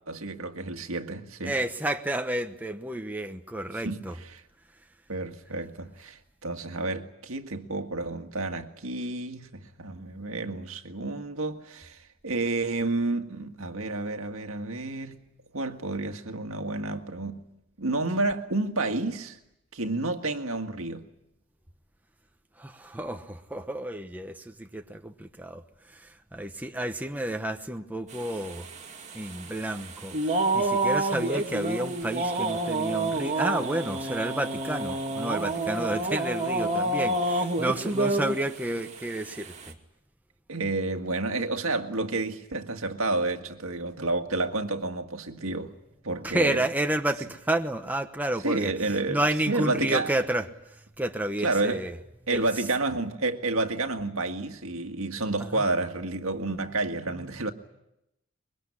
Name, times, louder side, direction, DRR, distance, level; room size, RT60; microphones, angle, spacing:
voice 1, 0.1-1.6 3.8-4.4 5.1-15.3 15.5-17.4 17.8-19.4 19.7-21.1 40.5-45.7 46.0-46.7 48.4-49.2 49.5-50.1 51.4-51.8 52.3-57.5, right 2 dB, 75° right, 1.9 m, -30 dB
voice 2, 1.4-4.1 22.6-25.6 25.9-28.7 29.1-39.7 46.2-50.4 51.0-51.9 52.3-52.4 55.4-55.6, right 1 dB, 10° right, 1.0 m, -31 dB
sound 1, 28.1-38.6 39.0-39.7, right 2 dB, 35° right, 2.5 m, -29 dB
24.0 x 22.0 x 9.9 m
head